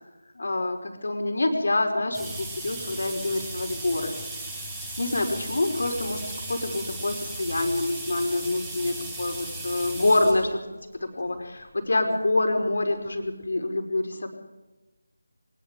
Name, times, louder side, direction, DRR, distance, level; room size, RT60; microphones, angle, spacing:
voice 1, 0.3-4.2 5.0-10.6 11.0-14.3, left 2 dB, 60° left, 4 dB, 5.1 m, -26 dB
water sink, 2.1-10.4 11.3-11.4 12.6-12.7 13.1-13.2 13.4-13.5, right 2 dB, 10° right, 7.3 m, -36 dB
24.0 x 21.5 x 5.2 m, 1.1 s
figure-of-eight pair, 160°, 0 cm